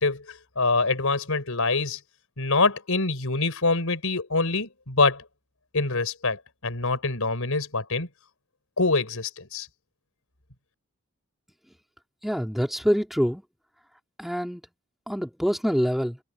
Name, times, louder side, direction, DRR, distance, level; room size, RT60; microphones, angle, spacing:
voice 1, 0.0-2.0 2.4-5.2 5.7-8.1 8.8-9.7, left 3 dB, 75° left, 3.9 m, -25 dB
voice 2, 12.2-13.4 14.2-14.6 15.1-16.2, equal, ahead, 2.9 m, -25 dB
head